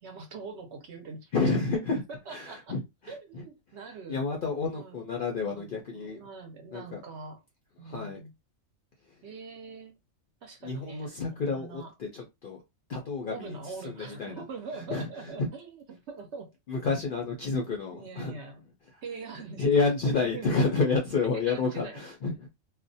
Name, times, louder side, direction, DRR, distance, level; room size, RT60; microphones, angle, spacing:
voice 1, 0.0-1.3 2.1-2.7 3.1-4.2 4.7-5.0 5.4-7.4 7.8-8.3 9.2-9.9 10.4-11.9 13.3-16.6 17.6-18.7 19.0-19.8 20.2-20.8 21.3-22.1, right 4 dB, 65° right, 0.8 m, -43 dB
voice 2, 1.3-2.0 2.3-3.4 4.1-6.2 6.7-7.0 7.8-8.2 10.6-12.6 12.9-13.6 13.8-14.4 14.9-15.1 15.4-15.5 16.7-18.4 19.6-22.5, left 4 dB, 60° left, 0.6 m, -29 dB
2.4 x 2.1 x 2.6 m
omnidirectional pair, 1.4 m